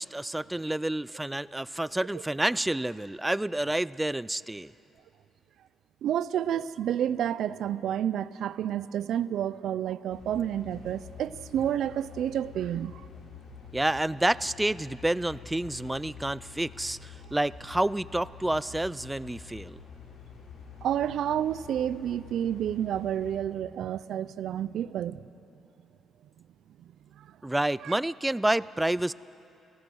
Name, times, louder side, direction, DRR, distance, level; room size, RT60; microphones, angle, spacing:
voice 1, 0.0-4.7 13.7-19.8 27.4-29.1, right 1 dB, 10° right, 0.4 m, -29 dB
voice 2, 6.0-13.0 20.8-25.2 27.2-27.4 27.8-28.0, right 10 dB, 75° right, 0.5 m, -30 dB
sound 1, 10.1-23.4, left 6 dB, 70° left, 3.9 m, -47 dB
28.5 x 17.0 x 6.4 m
cardioid pair, 90°, 0 cm